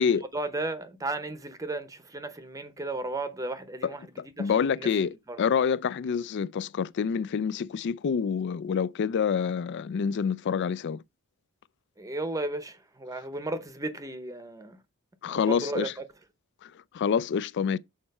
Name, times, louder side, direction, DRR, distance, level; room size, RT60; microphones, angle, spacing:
voice 1, 0.3-4.0 4.4-4.9 5.3-5.4 12.0-14.8 15.3-16.0, right 2 dB, 15° right, 0.7 m, -34 dB
voice 2, 3.8-11.0 15.2-15.9 16.6-17.8, left 6 dB, 55° left, 0.3 m, -27 dB
6.6 x 4.3 x 5.4 m
head